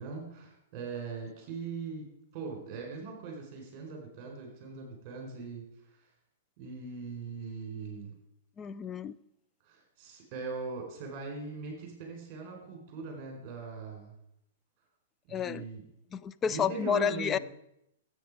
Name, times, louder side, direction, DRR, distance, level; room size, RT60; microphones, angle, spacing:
voice 1, 0.0-2.1 2.3-5.7 6.6-8.1 9.6-14.1 15.3-15.8 16.5-17.4, right 4 dB, 40° right, 1 dB, 4.5 m, -40 dB
voice 2, 8.6-9.2 15.3-15.6 16.1-17.4, left 7 dB, 20° left, 16 dB, 0.4 m, -30 dB
13.5 x 8.4 x 4.9 m, 0.80 s
hypercardioid pair, 130°, 0 cm